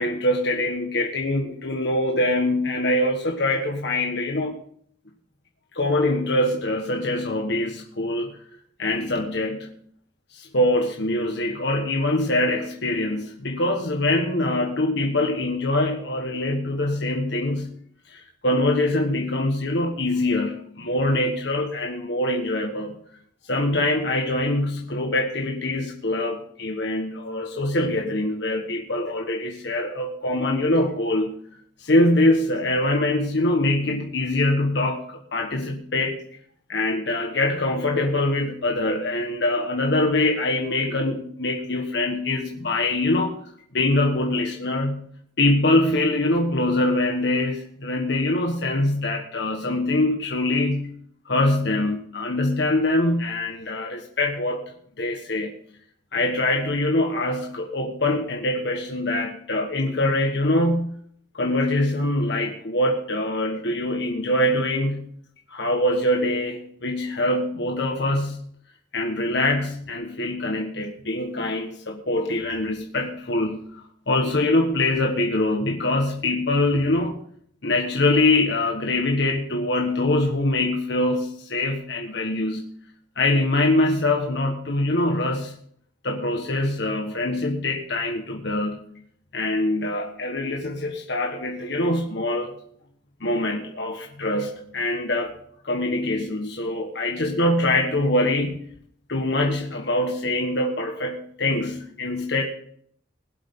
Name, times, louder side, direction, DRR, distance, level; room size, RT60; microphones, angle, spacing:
voice 1, 0.0-4.5 5.7-8.4 8.8-9.7 10.3-17.8 18.1-23.0 23.5-31.4 31.8-36.2 36.7-43.3 43.7-45.1 45.4-51.0 51.2-55.5 56.1-60.9 61.3-65.1 65.5-68.5 68.9-77.2 77.6-82.6 83.2-85.5 86.0-88.8 89.3-92.5 93.2-95.3 95.6-98.7 99.1-102.5, left 1 dB, 60° left, 2 dB, 1.4 m, -24 dB
21.5 x 7.9 x 3.8 m, 0.64 s
head